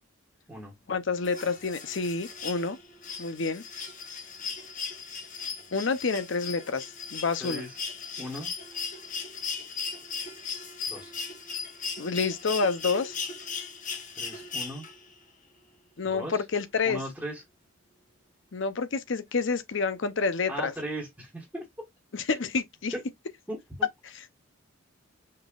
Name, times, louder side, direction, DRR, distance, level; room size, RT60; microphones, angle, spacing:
voice 1, 0.9-2.8 3.2-3.6 5.7-7.6 12.0-13.2 16.0-17.0 18.5-20.7 22.1-22.9, left 4 dB, 60° left, 0.6 m, -28 dB
sound 1, 1.2-15.2 16.6-16.7, left 5 dB, 35° left, 1.0 m, -37 dB
voice 2, 7.4-7.8 8.2-8.5 10.9-11.1 14.2-14.9 16.1-16.4 16.8-17.4 20.5-21.6 22.9-23.0 23.5-23.6, equal, 5° right, 1.4 m, -37 dB
5.3 x 3.9 x 2.4 m
head